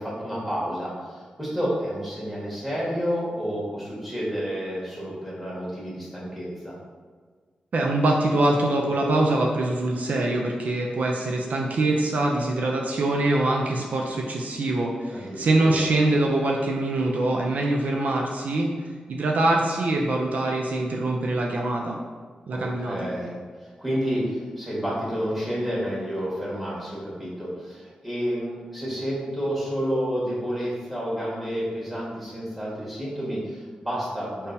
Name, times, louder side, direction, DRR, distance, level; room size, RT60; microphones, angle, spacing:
voice 1, 0.0-6.8 15.1-15.9 22.5-34.5, equal, 5° right, -7 dB, 1.4 m, -30 dB
voice 2, 7.7-18.7 19.1-22.0 22.5-23.0, right 2 dB, 70° right, -1 dB, 0.4 m, -24 dB
3.6 x 2.7 x 2.6 m, 1.5 s
cardioid pair, 70°, 3 cm